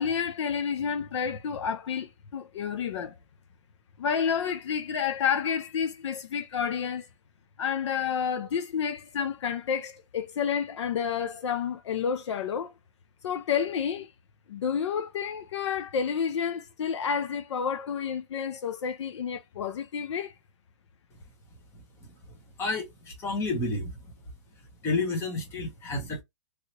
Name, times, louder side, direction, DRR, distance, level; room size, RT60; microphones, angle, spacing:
voice 1, 0.0-3.1 4.0-7.1 7.6-12.7 13.2-14.1 14.5-20.3, left 7 dB, 60° left, 0.6 m, -30 dB
voice 2, 22.3-23.9 24.8-26.2, left 2 dB, 15° left, 1.0 m, -30 dB
3.2 x 2.8 x 2.8 m
hypercardioid pair, 160°, 17 cm